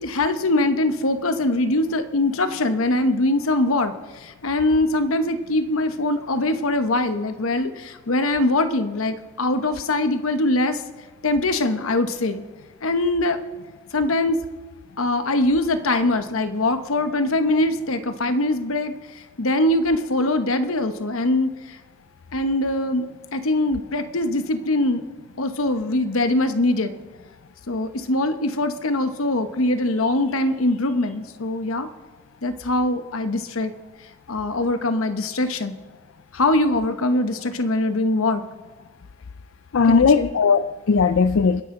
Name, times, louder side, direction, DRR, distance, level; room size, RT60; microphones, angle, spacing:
voice 1, 0.0-10.8 11.2-12.4 12.8-13.4 13.9-14.4 15.0-21.6 22.3-25.0 25.4-26.9 27.7-31.9 32.4-33.7 34.3-35.8 36.3-38.4 39.9-40.3, left 2 dB, 85° left, 9 dB, 1.0 m, -22 dB
voice 2, 39.7-41.6, left 5 dB, 70° left, 12 dB, 0.4 m, -18 dB
27.5 x 10.5 x 3.8 m, 1.3 s
head